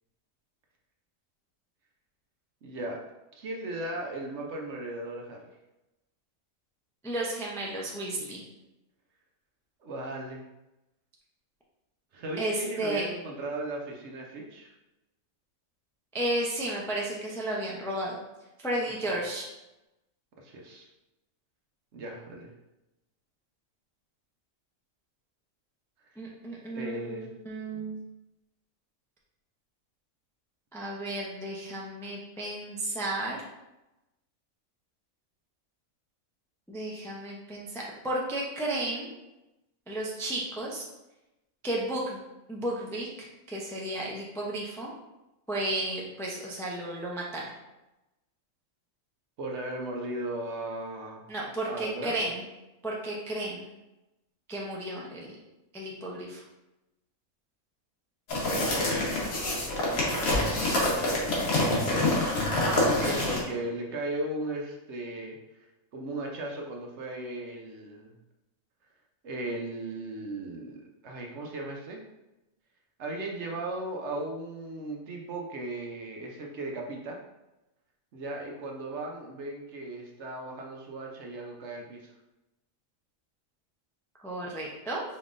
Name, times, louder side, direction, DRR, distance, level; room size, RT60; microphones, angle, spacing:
voice 1, 2.6-3.0 3.3-5.5 9.8-10.4 12.1-14.7 19.1-19.2 20.4-20.9 21.9-22.5 26.7-27.3 27.7-27.9 49.4-51.2 51.7-52.3 62.6-65.7 65.9-68.1 69.2-72.0 73.0-77.2 78.1-82.1, right 1 dB, 60° right, 0 dB, 0.9 m, -37 dB
voice 2, 7.0-8.4 12.4-13.0 16.1-18.2 18.6-19.5 26.2-28.0 30.7-33.4 36.7-39.1 39.9-40.8 41.6-42.2 42.5-44.9 45.5-47.5 51.3-52.4 52.8-53.6 54.5-55.4 55.7-56.4 84.2-85.0, right 1 dB, 5° left, -4 dB, 0.4 m, -33 dB
sound 1, 58.3-63.4, left 1 dB, 90° left, 1.6 m, -26 dB
4.7 x 3.6 x 2.5 m, 0.97 s
omnidirectional pair, 1.4 m